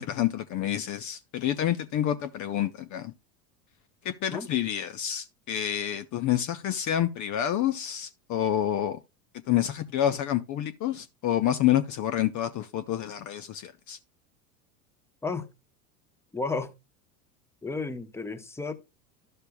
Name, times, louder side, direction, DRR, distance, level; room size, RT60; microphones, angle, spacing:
voice 1, 0.0-3.1 4.0-9.0 9.5-14.0, left 11 dB, 40° left, 0.7 m, -28 dB
voice 2, 16.3-16.7 17.6-18.7, left 3 dB, 5° left, 1.0 m, -32 dB
12.0 x 6.7 x 2.2 m
hypercardioid pair, 90°, 47 cm